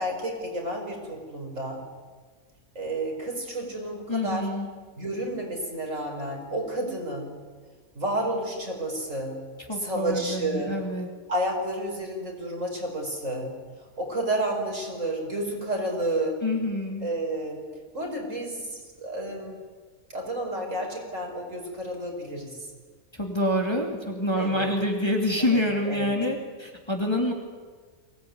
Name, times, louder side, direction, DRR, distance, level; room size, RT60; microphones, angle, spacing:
voice 1, 0.0-1.8 2.8-4.5 5.0-7.3 7.9-9.4 9.8-10.8 11.3-13.6 14.0-16.4 17.0-17.7 17.9-19.6 20.1-22.6 24.4-24.7 25.4-26.1, right 1 dB, 55° right, 1 dB, 5.5 m, -31 dB
voice 2, 4.1-4.7 9.7-11.1 16.4-17.1 23.1-27.3, left 1 dB, 15° left, 1 dB, 2.8 m, -27 dB
23.5 x 18.0 x 9.5 m, 1.5 s
omnidirectional pair, 1.5 m